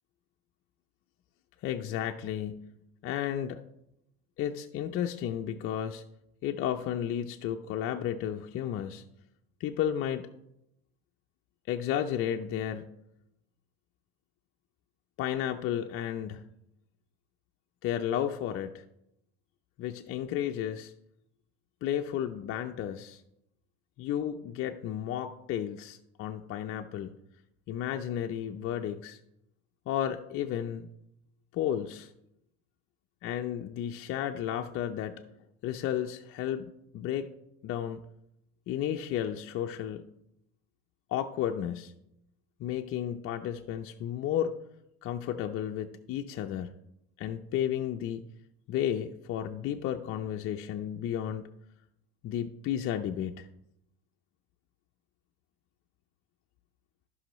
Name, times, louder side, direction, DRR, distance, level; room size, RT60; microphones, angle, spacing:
voice 1, 1.6-2.7 3.0-3.6 4.4-6.0 6.4-9.0 9.6-10.3 11.7-13.0 15.2-16.5 17.8-18.8 19.8-20.9 21.8-23.2 24.0-27.1 27.7-29.2 29.9-30.9 31.5-32.1 33.2-35.2 35.6-37.3 37.6-38.0 38.7-40.1 41.1-41.9 42.6-44.6 45.0-46.7 47.2-48.2 48.7-51.5 52.2-53.5, left 10 dB, 45° left, 4 dB, 0.6 m, -33 dB
14.5 x 5.5 x 3.1 m, 0.81 s
supercardioid pair, 110°, 31 cm